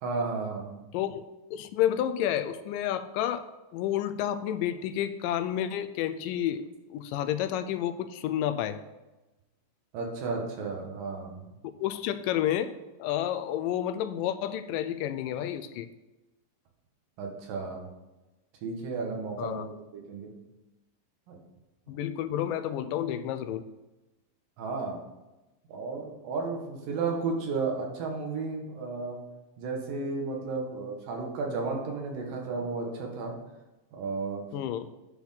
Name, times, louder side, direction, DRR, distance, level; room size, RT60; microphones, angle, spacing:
voice 1, 0.0-0.8 9.9-11.5 17.2-17.9 18.6-20.3 21.3-21.4 24.6-25.0 25.7-29.2 29.6-33.3 33.9-34.5, right 4 dB, 80° right, 1 dB, 3.2 m, -33 dB
voice 2, 0.9-3.4 3.7-6.6 6.9-8.8 11.6-12.7 13.0-15.9 19.4-19.7 21.9-23.6 34.5-34.9, left 11 dB, 85° left, 9 dB, 2.2 m, -30 dB
9.8 x 4.4 x 5.7 m, 1.1 s
omnidirectional pair, 3.9 m